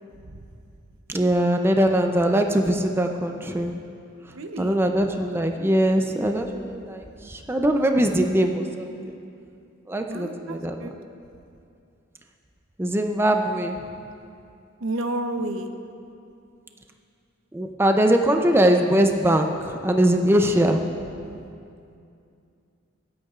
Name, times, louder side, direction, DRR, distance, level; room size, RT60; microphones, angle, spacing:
voice 1, 1.1-3.7 4.6-8.9 9.9-10.9 12.8-13.8 17.5-20.8, right 1 dB, 10° right, 4 dB, 0.4 m, -21 dB
voice 2, 4.3-4.8 10.1-10.9 14.8-15.7, right 1 dB, 75° right, 7 dB, 0.7 m, -30 dB
25.0 x 8.4 x 2.4 m, 2.5 s
head